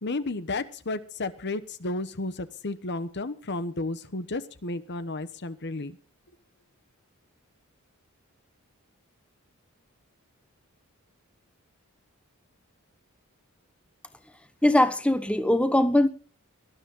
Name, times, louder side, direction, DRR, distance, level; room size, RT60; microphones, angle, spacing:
voice 1, 0.0-6.0, left 2 dB, 50° left, 1.1 m, -32 dB
voice 2, 14.6-16.1, left 1 dB, 5° left, 1.1 m, -21 dB
19.0 x 12.0 x 3.8 m
head